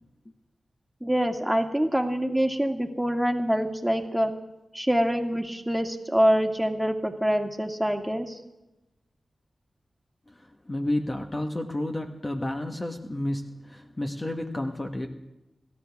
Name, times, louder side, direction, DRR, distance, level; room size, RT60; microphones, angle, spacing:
voice 1, 1.0-4.3 4.7-8.4, equal, 5° right, 3 dB, 2.2 m, -25 dB
voice 2, 10.3-15.1, left 1 dB, 30° left, 3 dB, 1.4 m, -31 dB
26.5 x 13.0 x 3.6 m, 0.97 s
cardioid pair, 50°, 0 cm